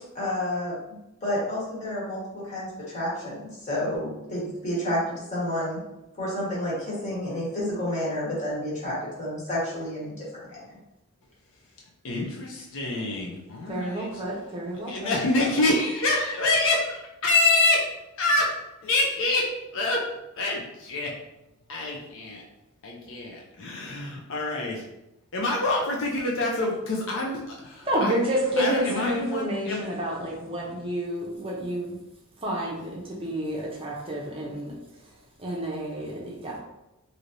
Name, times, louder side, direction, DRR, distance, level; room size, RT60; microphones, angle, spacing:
voice 1, 0.1-0.7 1.2-5.8 6.2-10.6, left 1 dB, 30° left, -7 dB, 1.3 m, -30 dB
voice 2, 12.0-14.1 14.7-17.9 18.2-18.5 18.8-20.0 20.4-21.1 21.7-22.4 22.8-24.8 25.3-28.1 28.6-29.8, left 2 dB, 60° left, -2 dB, 0.6 m, -26 dB
voice 3, 13.7-15.1 27.9-32.0 32.4-34.7 35.4-36.6, right 1 dB, 25° right, -3 dB, 0.6 m, -29 dB
3.2 x 2.7 x 2.6 m, 0.92 s
head